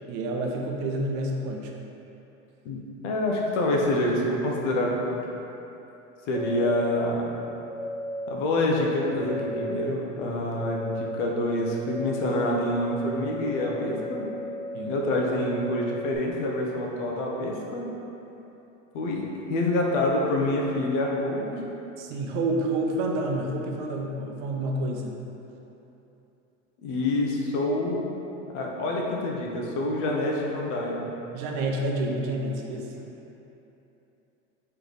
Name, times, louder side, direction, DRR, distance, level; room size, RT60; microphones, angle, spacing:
voice 1, 0.0-1.7 14.7-14.9 22.0-25.2 31.3-33.1, right 1 dB, 60° right, 1 dB, 0.7 m, -29 dB
voice 2, 2.6-4.9 6.2-7.3 8.3-14.3 14.8-17.9 18.9-21.6 26.8-28.1 28.5-31.1, left 1 dB, 70° left, -1 dB, 0.8 m, -27 dB
sound 1, 6.3-7.1 7.7-8.4 9.2-9.9 10.5-11.2 11.9-16.2, equal, 10° right, 0.3 m, -35 dB
3.3 x 3.3 x 4.0 m, 3.0 s
hypercardioid pair, 100°, 38 cm